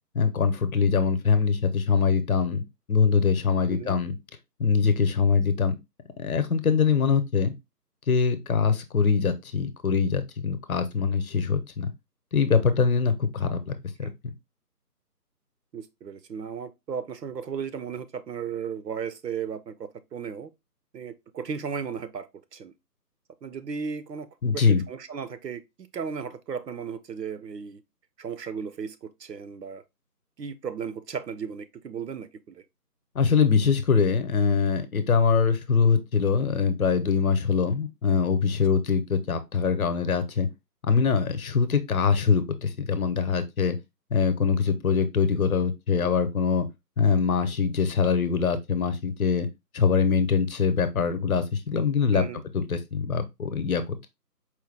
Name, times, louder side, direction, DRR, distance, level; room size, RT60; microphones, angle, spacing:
voice 1, 0.1-4.1 4.6-5.8 6.2-7.5 8.1-11.9 12.3-14.1 24.4-24.8 33.1-40.5 40.8-43.8 44.1-46.7 47.0-49.5 49.7-52.2 52.5-54.1, left 5 dB, 60° left, 0.7 m, -23 dB
voice 2, 15.7-20.5 20.9-22.7 23.4-25.6 25.9-27.8 28.2-29.8 30.4-32.6 52.1-52.4, right 6 dB, 85° right, 0.7 m, -35 dB
4.5 x 2.1 x 3.2 m
figure-of-eight pair, 165°, 48 cm